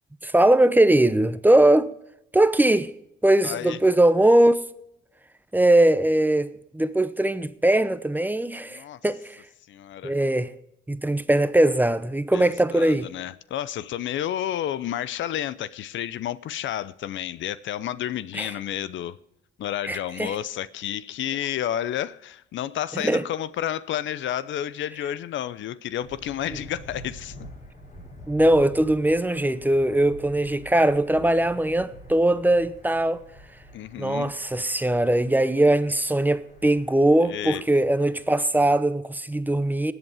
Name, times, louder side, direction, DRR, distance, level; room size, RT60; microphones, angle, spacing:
voice 1, 0.2-1.9 2.3-2.9 3.2-4.6 5.5-6.5 6.7-9.4 10.0-10.5 10.9-13.1 18.3-18.5 19.8-20.4 22.9-23.2 28.3-33.2 34.0-39.9, right 1 dB, 10° right, 0.7 m, -20 dB
voice 2, 3.4-3.8 8.7-9.0 9.7-10.1 12.3-19.2 19.6-27.3 33.7-34.3 37.2-37.6, left 11 dB, 70° left, 0.6 m, -31 dB
Thunder, 26.0-38.5, equal, 40° left, 6.2 m, -46 dB
19.5 x 8.1 x 4.8 m
cardioid pair, 90°, 20 cm